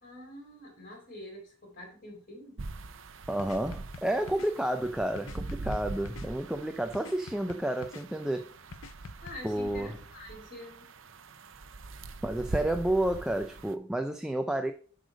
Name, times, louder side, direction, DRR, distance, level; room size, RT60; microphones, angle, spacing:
voice 1, 0.0-2.6 9.2-10.9, left 1 dB, 45° left, 4.1 m, -46 dB
sound 1, 2.6-13.7, right 3 dB, 65° right, 0.7 m, -42 dB
voice 2, 3.3-8.5 9.4-10.0 12.2-14.7, right 1 dB, 5° right, 0.4 m, -30 dB
sound 2, 3.4-4.5 5.2-6.3 6.9-8.0 8.7-9.3, left 5 dB, 80° left, 0.6 m, -46 dB
7.8 x 5.0 x 5.1 m
head